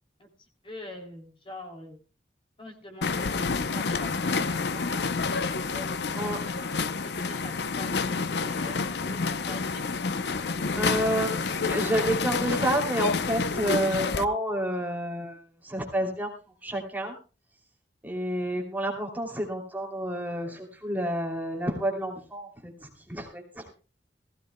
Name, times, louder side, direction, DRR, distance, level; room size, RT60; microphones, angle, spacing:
voice 1, 0.2-2.0 2.6-5.1 5.7-8.0 8.3-9.8, left 1 dB, 30° left, 2 dB, 3.0 m, -44 dB
sound 1, 3.0-14.2, left 4 dB, 65° left, 0.7 m, -29 dB
voice 2, 10.8-16.3 16.6-17.2 18.0-23.7, right 1 dB, 10° right, 1 dB, 2.8 m, -30 dB
19.0 x 16.0 x 2.2 m, 0.32 s
head